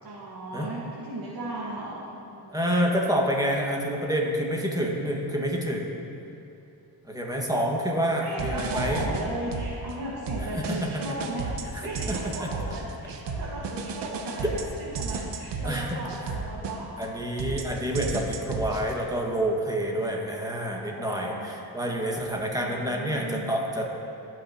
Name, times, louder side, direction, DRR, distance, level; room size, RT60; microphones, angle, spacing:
voice 1, 0.0-3.1 8.1-17.1 19.9-20.0 20.3-21.5 22.6-23.5, right 1 dB, 55° right, -7 dB, 1.8 m, -36 dB
voice 2, 2.5-6.0 7.0-9.1 10.5-11.2 11.7-11.8 12.1-12.5 15.7-16.0 17.0-23.9, equal, 10° right, -1 dB, 1.8 m, -28 dB
sound 1, 8.4-9.9 10.3-17.1 17.4-18.9, right 4 dB, 80° right, 0.9 m, -33 dB
16.0 x 6.0 x 3.0 m, 2.9 s
cardioid pair, 65°, 42 cm